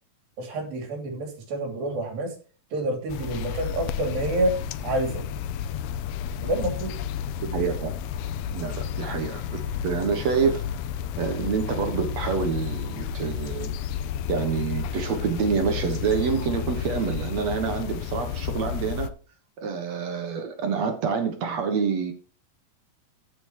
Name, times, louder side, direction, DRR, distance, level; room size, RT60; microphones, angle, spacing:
voice 1, 0.4-2.3 2.7-4.6 4.8-5.2 6.4-6.9, right 1 dB, 75° right, 4 dB, 4.8 m, -28 dB
sound 1, 3.1-19.1, left 8 dB, 85° left, 2.6 m, -31 dB
voice 2, 7.4-7.9 8.5-10.6 11.2-13.8 14.3-19.1 19.6-22.1, right 6 dB, 55° right, 6 dB, 2.2 m, -27 dB
15.0 x 7.1 x 3.0 m, 0.36 s
omnidirectional pair, 4.2 m